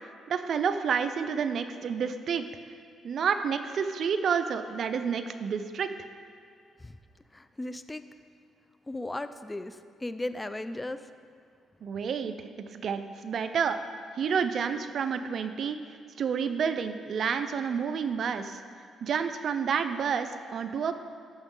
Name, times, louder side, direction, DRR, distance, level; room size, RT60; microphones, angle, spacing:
voice 1, 0.3-2.4 3.0-5.9 11.8-12.3 12.7-13.8 14.2-15.8 16.2-18.6 19.0-20.9, right 6 dB, 60° right, 9 dB, 0.6 m, -29 dB
voice 2, 7.3-8.0 8.9-11.0, left 1 dB, 15° left, 11 dB, 0.4 m, -36 dB
14.0 x 6.3 x 3.8 m, 2.3 s
cardioid pair, 90°, 0 cm